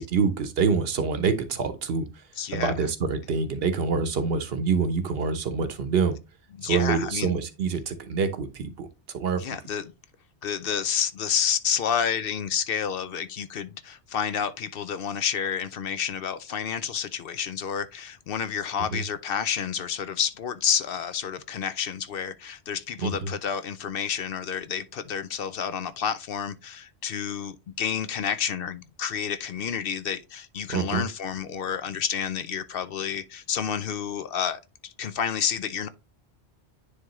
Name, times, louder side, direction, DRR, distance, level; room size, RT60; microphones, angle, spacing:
voice 1, 0.0-2.1 2.5-6.2 6.6-8.9 9.1-9.6 18.9-19.0 23.0-23.3 30.7-31.0, right 5 dB, 65° right, 1.0 m, -26 dB
voice 2, 2.4-2.7 6.6-7.4 9.4-9.9 10.4-35.9, left 8 dB, 65° left, 0.7 m, -29 dB
9.8 x 3.5 x 3.0 m
omnidirectional pair, 1.1 m